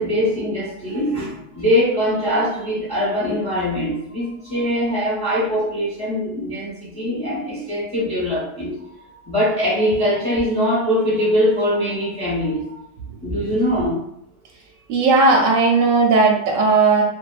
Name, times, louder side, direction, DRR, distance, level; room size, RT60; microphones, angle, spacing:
voice 1, 0.0-8.7 9.2-12.7 13.2-14.0, equal, 5° left, -8 dB, 0.7 m, -22 dB
voice 2, 14.9-17.0, right 3 dB, 70° right, 0 dB, 0.8 m, -16 dB
2.7 x 2.3 x 2.4 m, 0.74 s
omnidirectional pair, 1.8 m